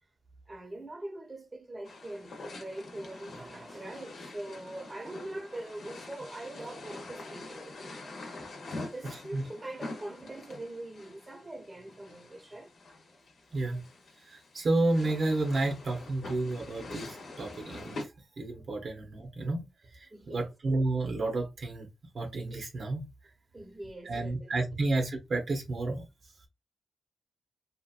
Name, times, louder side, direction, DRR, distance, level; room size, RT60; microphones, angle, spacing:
voice 1, 0.5-8.2 8.7-12.7 20.1-20.5 23.5-24.5, right 1 dB, 25° right, 0.8 m, -43 dB
sound 1, 1.9-18.1, left 2 dB, 70° left, 0.8 m, -45 dB
voice 2, 13.5-13.8 14.3-18.0 18.4-19.6 19.9-21.9 22.1-23.1 24.0-26.1, right 2 dB, 65° right, 0.9 m, -31 dB
2.9 x 2.5 x 2.4 m
cardioid pair, 60°, 0 cm